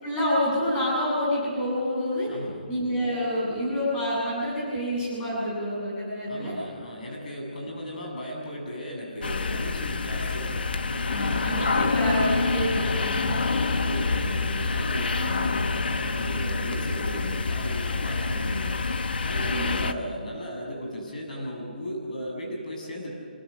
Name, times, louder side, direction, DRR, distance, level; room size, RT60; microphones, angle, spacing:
voice 1, 0.0-2.3 2.7-6.5 11.1-13.2 15.1-15.5 16.4-16.5 19.5-19.9, equal, 15° left, -6 dB, 7.9 m, -28 dB
voice 2, 2.2-2.6 6.3-11.9 12.8-15.6 15.9-18.8 19.2-23.1, equal, 55° left, -1 dB, 7.2 m, -36 dB
sound 1, 9.2-19.9, left 4 dB, 75° left, 1.3 m, -27 dB
26.5 x 23.5 x 6.5 m, 2.1 s
hypercardioid pair, 170°, 5 cm